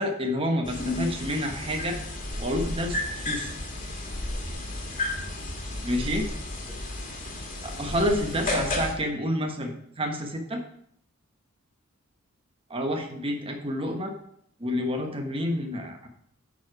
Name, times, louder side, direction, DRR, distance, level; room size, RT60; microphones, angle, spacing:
voice 1, 0.0-2.0 2.4-3.5 5.8-6.3 7.6-10.6 12.7-14.1 14.6-16.1, equal, 25° right, 3 dB, 1.2 m, -29 dB
sound 1, 0.6-8.9, left 2 dB, 40° left, 1.8 m, -32 dB
9.5 x 4.8 x 4.7 m, 0.68 s
head